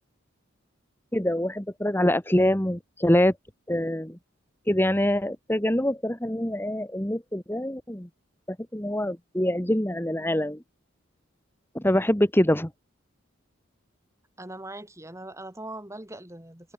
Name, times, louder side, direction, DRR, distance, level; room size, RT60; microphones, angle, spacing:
voice 1, 1.1-3.3 3.7-4.2 4.7-8.1 8.5-10.6 11.8-12.7, left 1 dB, 10° left, 1.7 m, -25 dB
voice 2, 14.4-16.7, right 1 dB, 15° right, 3.4 m, -41 dB
head